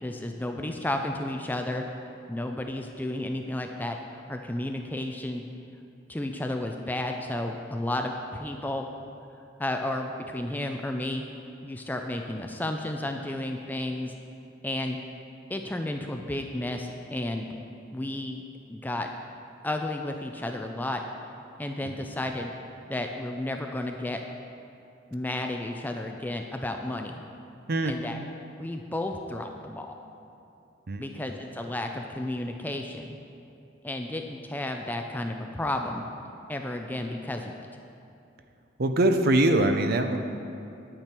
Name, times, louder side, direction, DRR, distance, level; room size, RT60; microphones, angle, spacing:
voice 1, 0.0-1.9 2.3-5.4 6.1-8.9 9.6-11.2 11.6-14.1 14.6-15.0 15.5-17.6 17.9-19.1 19.6-21.0 21.6-22.5 22.9-24.2 25.1-27.2 27.9-28.2 28.6-29.9 31.0-33.2 33.8-36.0 36.5-37.6, left 1 dB, 10° left, 4 dB, 0.4 m, -32 dB
voice 2, 38.8-40.2, right 1 dB, 50° right, 6 dB, 0.6 m, -23 dB
9.8 x 8.9 x 4.5 m, 2.7 s
head